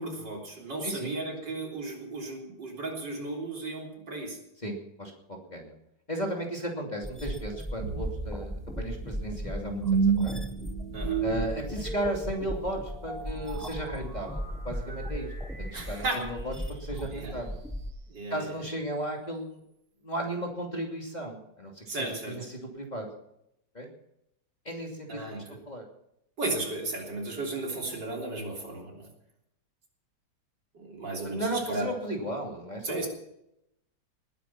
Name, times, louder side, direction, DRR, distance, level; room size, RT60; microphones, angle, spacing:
voice 1, 0.0-4.4 10.9-11.3 15.7-16.3 17.1-17.3 18.1-18.5 21.9-22.4 25.1-25.6 26.4-29.1 30.7-31.9 32.8-33.1, right 2 dB, 65° right, 0 dB, 4.1 m, -35 dB
voice 2, 0.8-1.2 4.6-5.7 6.1-10.4 11.2-15.3 15.6-16.5 16.8-17.6 18.3-19.6 20.0-23.1 23.7-23.9 24.6-25.2 25.7-25.9 31.2-33.1, right 1 dB, 20° left, 0 dB, 2.9 m, -35 dB
sound 1, 7.0-17.9, equal, ahead, 1.2 m, -37 dB
sound 2, 7.8-16.9, right 6 dB, 50° right, 2.1 m, -33 dB
20.0 x 10.0 x 5.9 m, 0.80 s
omnidirectional pair, 2.0 m